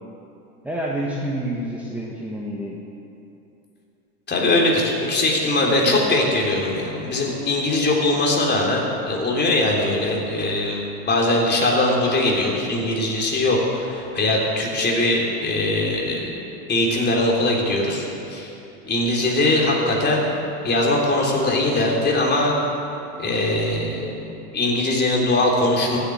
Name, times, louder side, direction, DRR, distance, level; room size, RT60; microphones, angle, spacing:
voice 1, 0.6-2.8 5.8-6.1, right 1 dB, 5° right, -4 dB, 1.6 m, -28 dB
voice 2, 4.3-16.3 16.7-18.5 18.8-20.2 20.6-22.5 23.2-24.1 24.5-26.0, left 2 dB, 20° left, -2 dB, 3.5 m, -21 dB
14.0 x 8.4 x 9.7 m, 2.8 s
hypercardioid pair, 115°, 47 cm